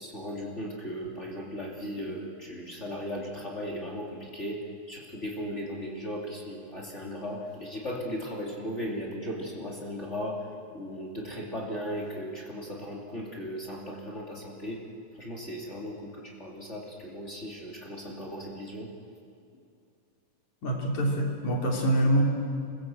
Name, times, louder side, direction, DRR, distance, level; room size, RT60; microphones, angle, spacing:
voice 1, 0.0-4.6 4.9-10.4 10.7-14.8 15.1-18.9, equal, 25° left, -3 dB, 2.9 m, -37 dB
voice 2, 20.6-22.2, right 1 dB, 75° left, 0 dB, 4.7 m, -25 dB
26.5 x 20.5 x 7.7 m, 2.4 s
omnidirectional pair, 3.3 m